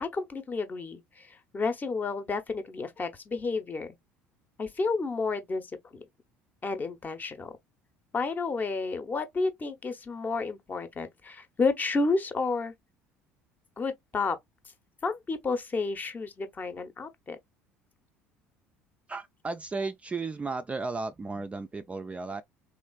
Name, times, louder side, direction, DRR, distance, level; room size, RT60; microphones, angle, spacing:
voice 1, 0.0-4.0 4.6-5.7 5.9-6.1 6.6-7.5 8.1-12.7 13.8-14.4 15.0-17.4, left 3 dB, 30° left, 0.7 m, -31 dB
voice 2, 19.1-22.4, right 3 dB, 20° right, 0.3 m, -34 dB
3.2 x 2.4 x 2.3 m
hypercardioid pair, 65°, 6 cm